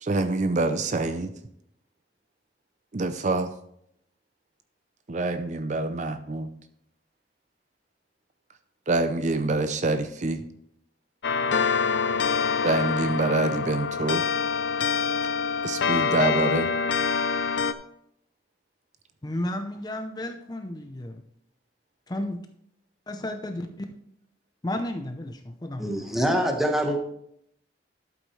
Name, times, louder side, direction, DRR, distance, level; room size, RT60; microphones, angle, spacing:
voice 1, 0.0-1.3 2.9-3.5 5.1-6.5 8.9-10.4 12.6-14.2 15.6-16.7, right 2 dB, 40° right, 9 dB, 0.6 m, -26 dB
sound 1, 11.2-17.7, left 5 dB, 80° left, 0.6 m, -25 dB
voice 2, 19.2-21.2 22.1-22.4 23.1-24.0 24.6-25.9, left 1 dB, 20° left, 6 dB, 0.6 m, -33 dB
voice 3, 25.8-27.0, equal, ahead, 2 dB, 1.3 m, -24 dB
12.0 x 8.2 x 3.2 m, 0.72 s
head